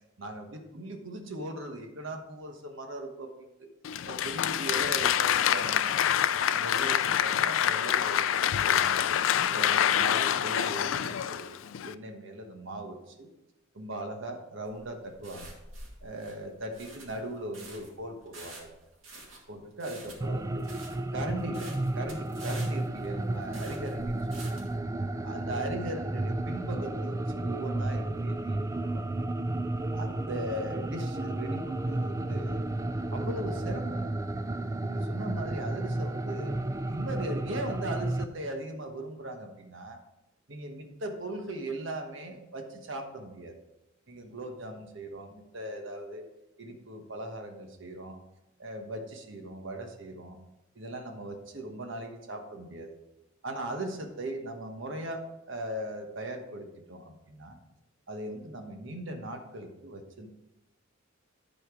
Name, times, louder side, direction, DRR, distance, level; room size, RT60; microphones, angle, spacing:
voice 1, 0.2-3.7 4.0-6.1 6.5-9.1 9.5-13.3 13.7-15.5 16.0-18.7 19.5-20.7 21.1-24.6 25.2-29.0 29.9-32.7 33.1-34.4 34.9-36.6 36.8-40.0 40.5-43.6 44.1-46.2 46.6-48.2 48.6-50.4 50.7-53.0 53.4-57.6 58.1-60.3, right 1 dB, 65° right, 4 dB, 1.2 m, -39 dB
Applause, 3.8-11.9, left 9 dB, 70° left, 0.4 m, -26 dB
sound 1, 14.6-24.8, right 2 dB, 85° right, 2.3 m, -48 dB
sound 2, 20.2-38.3, right 2 dB, 15° right, 0.3 m, -32 dB
11.0 x 4.4 x 4.9 m, 0.92 s
head